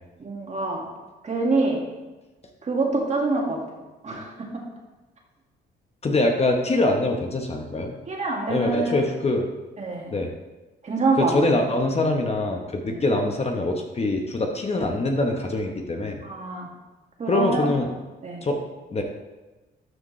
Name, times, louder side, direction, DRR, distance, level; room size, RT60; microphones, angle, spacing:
voice 1, 0.2-0.9 1.2-1.8 2.6-3.6 4.0-4.3 8.1-8.9 9.8-10.1 10.8-11.5 12.9-13.0 16.2-16.7 17.2-17.7 18.2-18.5, right 3 dB, 35° right, -1 dB, 1.9 m, -25 dB
voice 2, 6.0-7.9 8.5-9.4 10.1-10.3 11.2-16.2 17.3-17.9 18.4-18.6 18.9-19.0, left 2 dB, 30° left, 3 dB, 1.1 m, -24 dB
12.0 x 5.1 x 3.2 m, 1.1 s
cardioid pair, 90°, 20 cm